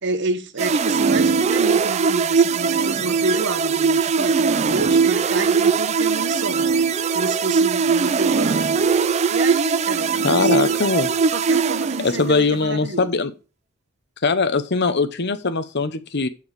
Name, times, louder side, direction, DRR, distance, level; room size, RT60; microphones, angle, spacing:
voice 1, 0.0-8.7 9.3-10.9 11.3-13.1, right 3 dB, 60° right, 1.2 m, -29 dB
sound 1, 0.6-12.5, right 5 dB, 35° right, 0.4 m, -20 dB
voice 2, 10.2-11.1 12.0-13.3 14.2-16.3, left 4 dB, 55° left, 1.0 m, -21 dB
7.1 x 6.9 x 4.9 m
head